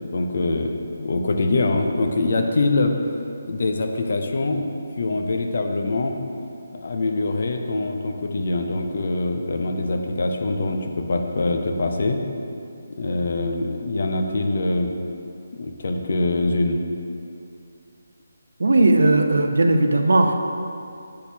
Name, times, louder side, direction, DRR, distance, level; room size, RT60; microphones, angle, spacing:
voice 1, 0.1-2.9 3.5-4.6 5.0-6.1 6.7-12.2 13.0-14.9 15.5-16.9, left 2 dB, 60° left, 4 dB, 0.6 m, -24 dB
voice 2, 18.6-20.3, right 2 dB, 75° right, 5 dB, 0.5 m, -17 dB
8.4 x 4.1 x 2.8 m, 2.5 s
figure-of-eight pair, 160°, 0 cm